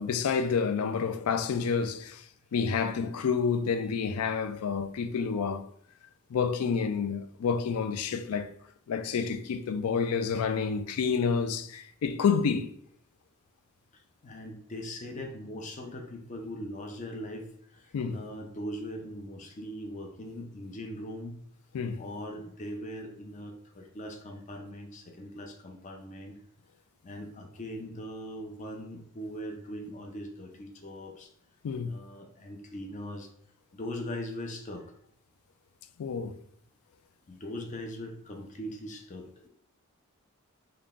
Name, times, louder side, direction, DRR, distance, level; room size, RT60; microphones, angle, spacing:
voice 1, 0.0-2.2 2.5-5.7 6.3-8.5 8.9-12.7 17.9-18.2 21.7-22.0 31.6-31.9 36.0-36.3, left 6 dB, 90° left, 0.4 m, -29 dB
voice 2, 13.9-21.4 22.0-26.4 27.0-31.3 31.8-33.3 33.7-34.9 37.3-39.5, equal, 35° left, 0.5 m, -40 dB
3.8 x 2.2 x 3.5 m
head